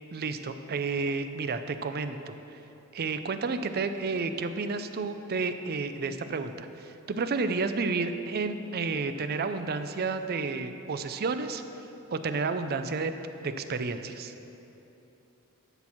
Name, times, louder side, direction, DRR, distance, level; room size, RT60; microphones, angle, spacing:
voice 1, 0.1-2.6 2.9-11.6 12.1-13.1 13.4-14.3, right 4 dB, 45° right, 9 dB, 0.5 m, -31 dB
12.0 x 4.4 x 7.2 m, 3.0 s
head